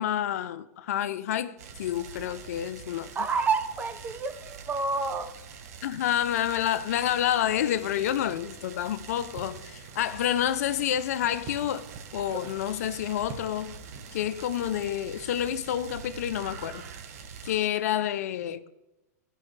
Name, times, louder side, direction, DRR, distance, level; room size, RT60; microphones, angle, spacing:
voice 1, 0.0-3.1 5.8-11.9 12.1-13.8 14.1-16.9 17.4-18.7, left 11 dB, 65° left, 0.5 m, -29 dB
sound 1, 1.6-17.5, right 6 dB, 65° right, 1.1 m, -45 dB
voice 2, 3.1-5.3, right 4 dB, 15° right, 0.7 m, -29 dB
sound 2, 7.8-14.9, right 6 dB, 45° right, 1.1 m, -48 dB
16.0 x 5.3 x 3.2 m
hypercardioid pair, 130°, 9 cm